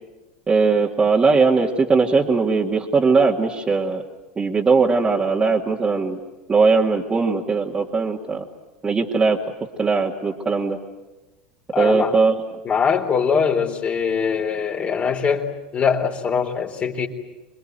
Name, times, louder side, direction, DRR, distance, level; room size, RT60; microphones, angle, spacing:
voice 1, 0.5-4.0 4.4-6.2 6.5-8.4 8.8-9.4 9.8-10.8 11.8-12.3, right 4 dB, 20° right, -4 dB, 2.4 m, -19 dB
voice 2, 11.7-12.2 12.6-17.1, left 6 dB, 30° left, 3 dB, 3.8 m, -22 dB
26.5 x 21.5 x 9.3 m, 1.1 s
hypercardioid pair, 100°, 4 cm